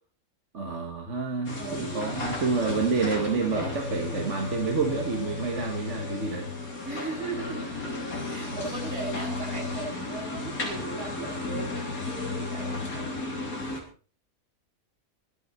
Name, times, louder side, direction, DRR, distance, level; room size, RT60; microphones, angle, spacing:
voice 1, 0.5-6.5, right 4 dB, 55° right, 2 dB, 2.0 m, -28 dB
sound 1, 1.5-13.8, left 3 dB, 75° left, 3.6 m, -34 dB
voice 2, 1.5-2.1 3.5-4.0 6.8-7.7 8.2-13.1, right 2 dB, 80° right, 0 dB, 8.5 m, -38 dB
23.5 x 8.1 x 4.2 m, 0.39 s
omnidirectional pair, 1.5 m